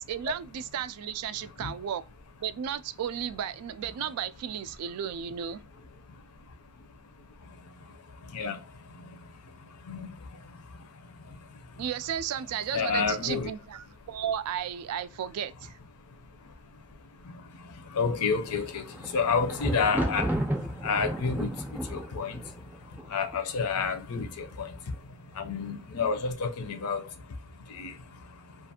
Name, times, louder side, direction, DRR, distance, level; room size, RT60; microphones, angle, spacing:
voice 1, 0.0-2.0 2.4-5.6 11.8-15.8, right 9 dB, 80° right, 0.3 m, -34 dB
voice 2, 1.3-1.7 4.0-4.1 4.8-5.0 5.6-11.9 12.7-13.5 13.8-14.1 15.9-28.7, left 5 dB, 85° left, 0.6 m, -33 dB
Thunder, 18.6-23.7 24.5-25.0 25.2-25.3, right 1 dB, 10° right, 0.5 m, -33 dB
2.4 x 2.4 x 2.7 m
head